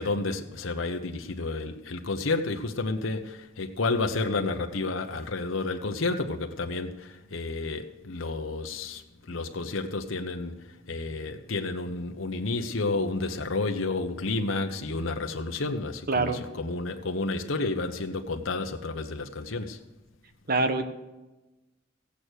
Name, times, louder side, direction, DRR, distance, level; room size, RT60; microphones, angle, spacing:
voice 1, 0.0-19.8, left 3 dB, 85° left, 1.0 m, -31 dB
voice 2, 16.1-16.4 20.5-20.8, right 3 dB, 50° right, 1.4 m, -24 dB
15.5 x 8.6 x 6.4 m
head